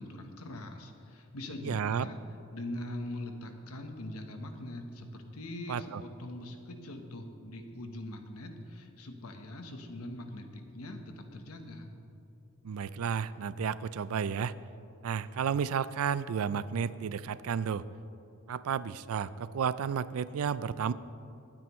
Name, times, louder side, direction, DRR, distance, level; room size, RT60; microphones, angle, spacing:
voice 1, 0.0-2.2 2.5-11.9, left 1 dB, 85° left, 5 dB, 1.1 m, -42 dB
voice 2, 1.6-2.1 5.7-6.0 12.6-14.5 15.0-17.9 18.5-20.9, right 7 dB, 75° right, 16 dB, 0.4 m, -32 dB
21.0 x 9.0 x 3.1 m, 2.7 s
head